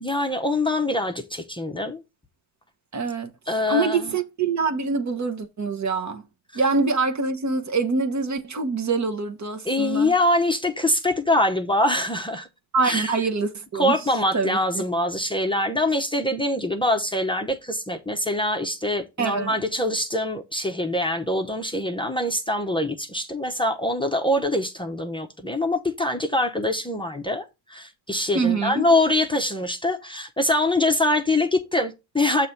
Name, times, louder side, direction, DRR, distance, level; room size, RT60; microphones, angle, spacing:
voice 1, 0.0-2.0 3.5-4.1 6.5-6.6 9.6-12.5 12.8-13.2 13.7-32.5, left 1 dB, 10° left, 0.8 m, -24 dB
voice 2, 2.9-3.3 3.7-6.2 6.5-10.1 12.7-14.0 14.3-14.8 19.2-19.5 28.3-28.8, right 4 dB, 35° right, 1.0 m, -25 dB
6.6 x 3.2 x 5.7 m
cardioid pair, 95°, 49 cm